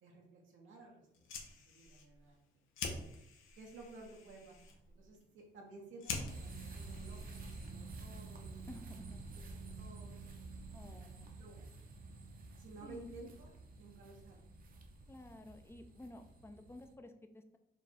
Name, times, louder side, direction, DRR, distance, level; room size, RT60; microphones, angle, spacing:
voice 1, 0.0-1.1 1.7-2.6 3.6-9.0 9.4-9.5 9.8-10.2 11.4-11.7 12.6-13.5 13.8-14.5, right 2 dB, 80° right, -1 dB, 1.0 m, -55 dB
Fire, 1.1-8.0, left 4 dB, 85° left, 0.7 m, -47 dB
sound 1, 6.3-16.9, right 3 dB, 45° right, 0.7 m, -50 dB
voice 2, 8.7-9.3 10.7-11.3 12.8-13.1 15.1-17.6, left 1 dB, 10° left, 7 dB, 0.5 m, -53 dB
4.5 x 2.3 x 4.3 m, 0.80 s
cardioid pair, 90°, 20 cm